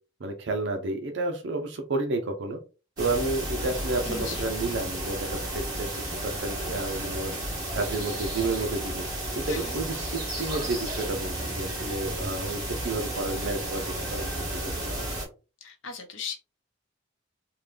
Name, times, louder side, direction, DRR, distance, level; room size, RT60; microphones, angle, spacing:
voice 1, 0.2-2.6 3.0-7.4 7.7-9.1 9.4-15.0, right 2 dB, 65° right, 5 dB, 0.6 m, -31 dB
sound 1, 3.0-15.3, right 1 dB, 20° right, 1.6 m, -33 dB
voice 2, 4.0-4.5 9.5-9.7 15.6-16.4, left 5 dB, 75° left, 5 dB, 0.8 m, -37 dB
3.7 x 2.2 x 3.2 m, 0.32 s
head